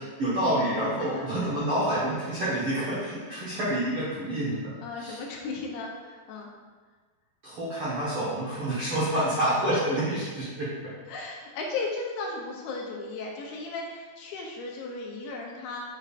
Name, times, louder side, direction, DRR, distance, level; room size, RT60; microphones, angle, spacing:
voice 1, 0.0-5.2 7.4-10.9, right 1 dB, 75° right, -9 dB, 1.2 m, -28 dB
voice 2, 4.8-6.5 9.1-9.2 11.1-15.9, left 3 dB, 80° left, -1 dB, 2.4 m, -36 dB
7.8 x 5.7 x 2.5 m, 1.4 s
omnidirectional pair, 4.6 m